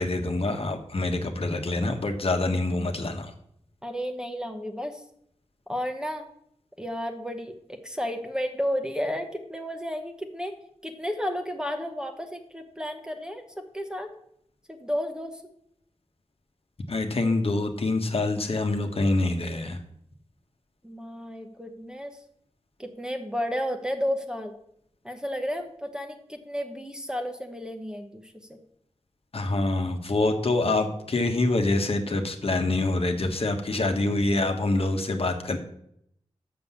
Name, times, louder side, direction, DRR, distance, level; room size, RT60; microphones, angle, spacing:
voice 1, 0.0-3.3 16.9-19.8 29.3-35.6, left 2 dB, 60° left, 5 dB, 1.2 m, -26 dB
voice 2, 3.8-5.0 5.7-6.3 6.8-10.6 10.8-14.1 14.7-15.4 20.8-22.2 22.8-24.5 25.0-28.6, equal, 5° right, 5 dB, 1.0 m, -32 dB
6.8 x 5.8 x 7.1 m, 0.71 s
wide cardioid pair, 85°, 11 cm